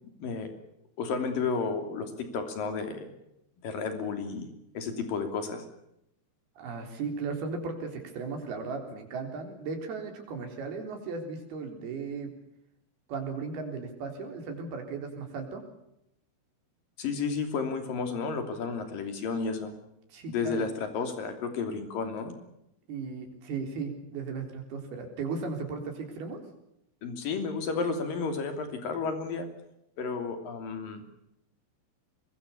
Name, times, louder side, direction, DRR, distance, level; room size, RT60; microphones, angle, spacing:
voice 1, 1.0-3.1 3.6-5.6 17.0-19.7 20.3-22.3 27.0-29.5 30.0-31.0, left 5 dB, 55° left, 7 dB, 4.4 m, -32 dB
voice 2, 6.6-12.3 13.1-15.6 20.1-20.7 22.9-26.4, right 4 dB, 60° right, 4 dB, 5.6 m, -36 dB
24.5 x 22.0 x 7.0 m, 0.81 s
omnidirectional pair, 5.1 m